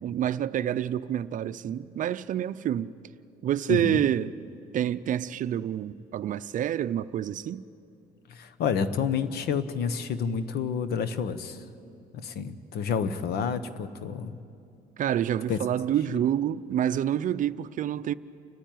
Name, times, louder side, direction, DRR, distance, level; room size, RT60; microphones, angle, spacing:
voice 1, 0.0-2.9 3.4-4.3 4.7-7.6 15.0-18.1, right 10 dB, 50° right, 0.5 m, -28 dB
voice 2, 3.7-4.0 8.3-11.6 12.1-14.4 15.5-15.6 16.1-16.2, left 6 dB, 70° left, 1.1 m, -29 dB
29.5 x 10.0 x 9.2 m
cardioid pair, 110°, 17 cm